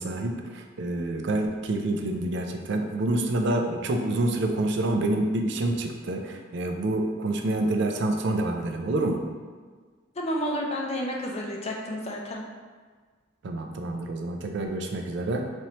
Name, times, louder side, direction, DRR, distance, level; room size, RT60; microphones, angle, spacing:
voice 1, 0.0-9.2 13.4-15.5, right 2 dB, 65° right, 3 dB, 0.4 m, -27 dB
voice 2, 10.2-12.4, equal, 35° left, 0 dB, 0.5 m, -30 dB
4.2 x 3.1 x 2.9 m, 1.5 s
head